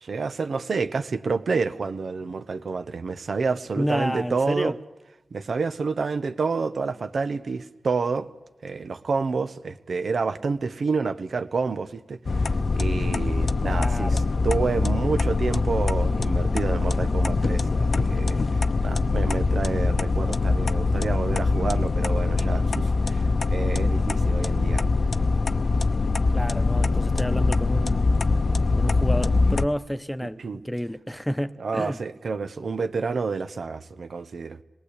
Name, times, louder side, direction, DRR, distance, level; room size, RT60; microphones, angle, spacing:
voice 1, 0.0-4.7 5.3-8.3 8.6-24.8 30.4-30.6 31.6-34.6, right 4 dB, 70° right, 1.1 m, -29 dB
voice 2, 3.8-4.8 13.6-14.2 26.3-28.3 28.8-30.4 30.6-32.0, equal, 5° left, 1.0 m, -30 dB
sound 1, 12.3-29.7, left 3 dB, 60° left, 0.8 m, -23 dB
26.5 x 19.0 x 8.4 m
cardioid pair, 45°, 0 cm